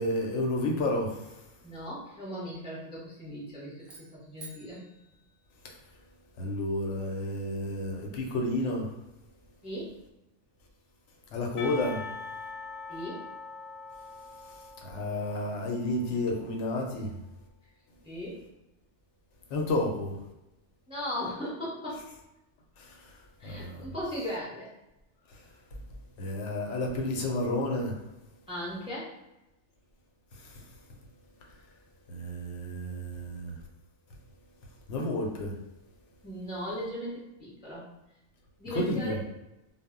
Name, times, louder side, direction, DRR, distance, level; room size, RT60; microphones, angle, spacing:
voice 1, 0.0-1.4 6.4-9.0 11.3-12.1 14.4-17.1 19.5-20.2 22.8-23.9 25.3-25.4 25.7-25.8 26.2-28.0 30.3-31.0 32.1-33.6 34.9-35.6 38.7-39.2, left 1 dB, 75° left, 0 dB, 0.9 m, -31 dB
voice 2, 1.6-4.0 4.3-4.8 9.6-9.9 12.9-13.2 18.0-18.4 20.9-22.1 23.4-24.7 28.5-29.1 36.2-37.9 38.6-39.2, equal, 5° right, -6 dB, 0.4 m, -37 dB
sound 1, 3.8-6.1, right 4 dB, 70° right, 0.3 m, -52 dB
Percussion, 11.6-16.4, left 4 dB, 60° left, 0.4 m, -43 dB
2.0 x 2.0 x 3.5 m, 0.93 s
omnidirectional pair, 1.2 m